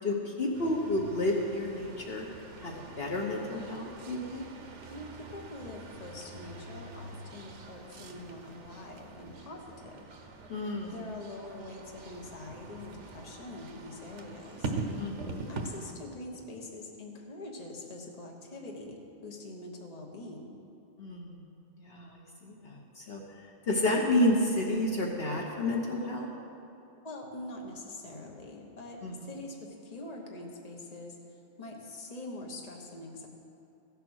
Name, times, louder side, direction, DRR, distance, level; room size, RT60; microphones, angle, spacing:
voice 1, 0.0-2.2 2.6-4.4 10.5-11.0 15.0-15.5 21.0-21.4 21.8-26.3 29.0-29.3, left 1 dB, 55° left, 0 dB, 1.3 m, -31 dB
sound 1, 0.5-15.9, right 3 dB, 75° right, 1.3 m, -43 dB
voice 2, 4.9-10.0 10.8-15.2 15.5-20.5 27.0-33.3, left 2 dB, 35° left, 0 dB, 1.3 m, -44 dB
15.5 x 6.9 x 6.4 m, 2.6 s
omnidirectional pair, 1.2 m